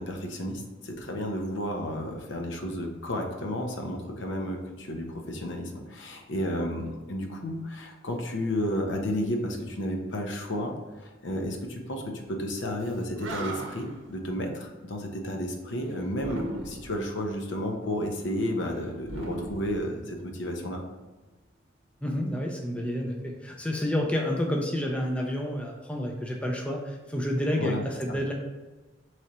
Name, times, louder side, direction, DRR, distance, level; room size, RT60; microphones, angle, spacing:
voice 1, 0.0-20.8 27.5-28.2, equal, 65° left, 3 dB, 0.7 m, -32 dB
Animal, 12.9-13.0 13.2-14.0 16.2-17.0 19.0-20.4, right 2 dB, 90° right, 0.7 m, -37 dB
voice 2, 22.0-28.3, equal, 5° left, 0 dB, 0.4 m, -29 dB
3.8 x 3.3 x 4.2 m, 1.2 s
head